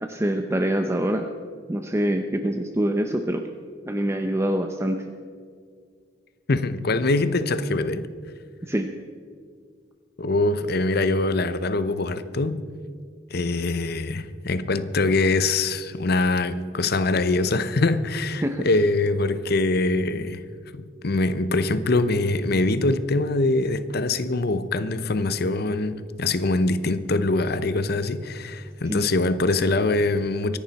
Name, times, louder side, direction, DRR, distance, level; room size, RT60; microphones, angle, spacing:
voice 1, 0.0-1.3 1.7-3.4 3.9-5.0 8.6-8.9 18.4-18.7 28.9-29.1, right 1 dB, 15° right, 0.7 m, -25 dB
voice 2, 6.5-8.1 10.2-12.7 13.3-20.4 20.7-30.6, left 2 dB, 60° left, 0.8 m, -23 dB
24.5 x 11.0 x 4.2 m
head